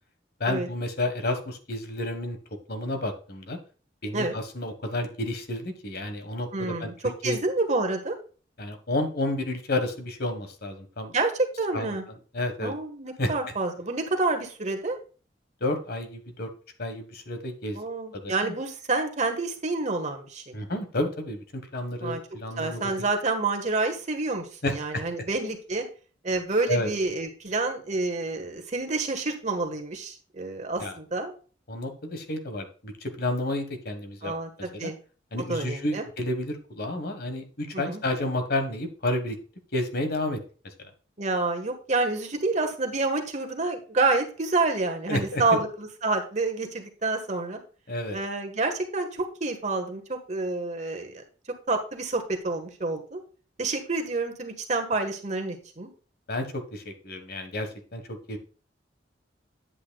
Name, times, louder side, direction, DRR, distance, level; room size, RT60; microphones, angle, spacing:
voice 1, 0.4-2.4 2.7-3.6 4.0-6.9 7.2-7.4 8.6-11.1 11.7-11.9 12.3-12.7 13.2-13.3 15.6-16.5 16.8-17.8 18.1-18.5 20.5-23.1 24.6-25.3 26.7-26.9 30.8-30.9 31.7-34.3 34.6-34.9 35.3-39.4 39.7-40.4 40.6-40.7 45.1-45.6 47.9-48.2 56.3-58.4, left 1 dB, 55° left, 6 dB, 1.5 m, -31 dB
voice 2, 6.5-6.9 7.2-8.1 11.1-12.0 12.6-15.0 17.7-20.5 22.0-22.2 22.6-25.8 26.2-31.3 34.2-35.0 35.5-36.0 37.7-38.0 41.2-47.6 48.1-51.2 51.7-53.2 53.6-55.9, right 3 dB, 40° right, 4 dB, 1.5 m, -28 dB
9.6 x 8.4 x 2.3 m, 0.37 s
head